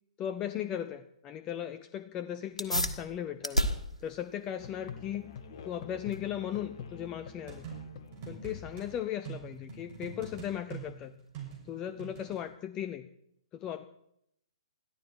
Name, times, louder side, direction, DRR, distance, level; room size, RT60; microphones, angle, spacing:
voice 1, 0.2-3.7 4.0-5.3 5.7-7.7 8.3-11.2 11.7-13.1 13.5-13.8, left 10 dB, 20° left, 10 dB, 0.6 m, -37 dB
sound 1, 2.5-12.5, equal, 90° left, 1.6 m, -38 dB
Musical instrument, 4.6-9.4, left 6 dB, 40° left, 1.6 m, -47 dB
sound 2, 7.5-8.9 9.3-12.4, right 6 dB, 30° right, 6.4 m, -44 dB
21.5 x 14.0 x 4.6 m, 0.76 s
figure-of-eight pair, 120°, 3 cm